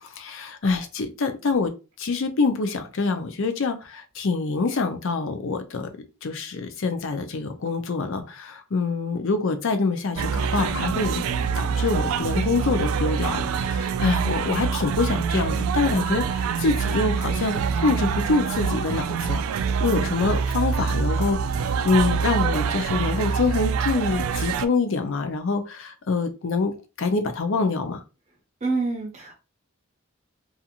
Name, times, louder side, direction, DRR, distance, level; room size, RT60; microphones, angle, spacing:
voice 1, 0.0-1.7 2.0-5.9 6.2-11.2 11.5-19.4 19.8-26.7 27.0-28.0, left 3 dB, 65° left, 0.5 m, -25 dB
sound 1, 10.2-24.7, right 6 dB, 80° right, 0.3 m, -25 dB
voice 2, 28.6-29.4, right 3 dB, 30° right, 0.7 m, -27 dB
2.5 x 2.5 x 2.8 m
head